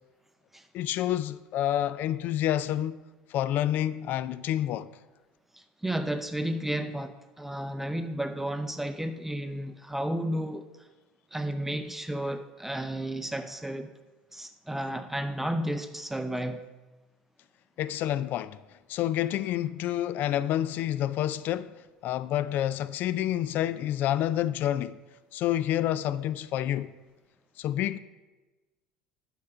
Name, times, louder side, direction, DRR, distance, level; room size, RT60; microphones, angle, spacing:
voice 1, 0.7-3.0 3.3-4.9 17.8-18.6 18.9-21.8 22.0-25.0 25.3-26.9 27.6-28.0, left 12 dB, 55° left, 0.4 m, -28 dB
voice 2, 5.5-10.9 11.3-13.9 14.3-16.6, right 1 dB, 5° right, 0.5 m, -32 dB
8.5 x 4.6 x 6.6 m
hypercardioid pair, 80°, 4 cm